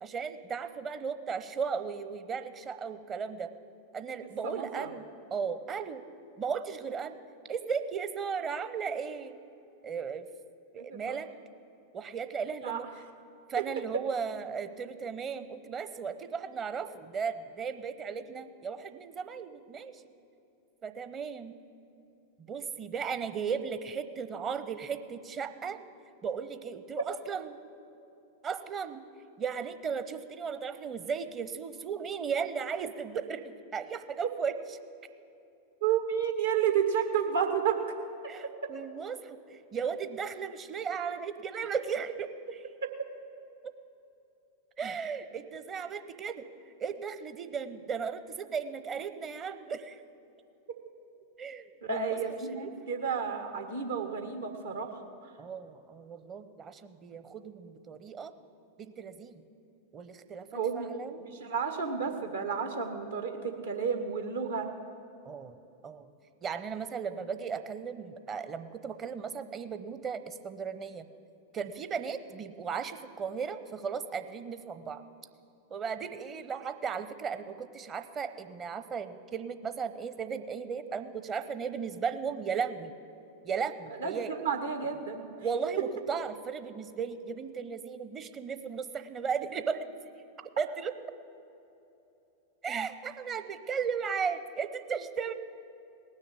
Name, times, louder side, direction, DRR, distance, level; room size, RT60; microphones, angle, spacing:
voice 1, 0.0-3.5 3.9-6.0 6.4-7.2 7.5-9.4 9.8-10.3 10.7-11.3 11.9-12.9 13.5-20.0 20.8-21.6 22.5-25.8 26.2-27.6 28.4-29.0 29.4-34.5 38.3-42.6 43.6-43.7 44.8-46.5 46.8-50.0 51.4-52.2 52.6-52.7 55.4-58.3 58.8-59.4 59.9-61.3 65.2-65.6 65.8-66.1 66.4-71.0 71.5-75.0 75.7-82.9 83.4-84.3 85.4-89.9 90.6-90.9 92.6-95.3, right 6 dB, 25° right, 11 dB, 0.8 m, -36 dB
voice 2, 4.4-4.9 10.8-11.2 12.6-12.8 35.8-37.8 51.8-55.0 55.2-55.3 60.5-60.9 61.2-64.7 84.0-85.2, right 7 dB, 70° right, 5 dB, 1.5 m, -31 dB
18.5 x 6.5 x 9.7 m, 2.8 s
figure-of-eight pair, 90°, 0 cm